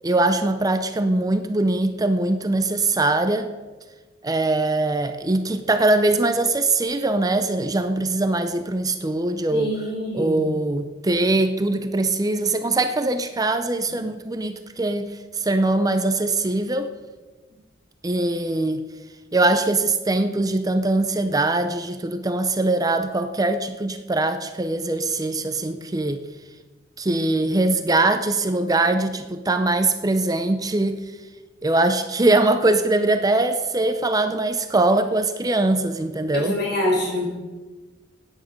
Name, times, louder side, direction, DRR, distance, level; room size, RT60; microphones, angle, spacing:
voice 1, 0.0-3.5 4.2-9.7 10.1-16.9 18.0-18.8 19.3-26.2 27.0-31.0 31.6-36.5, right 2 dB, 20° right, 8 dB, 0.6 m, -22 dB
voice 2, 9.5-10.4 36.3-37.3, left 1 dB, 60° left, -1 dB, 4.4 m, -25 dB
14.0 x 9.4 x 5.2 m, 1.3 s
head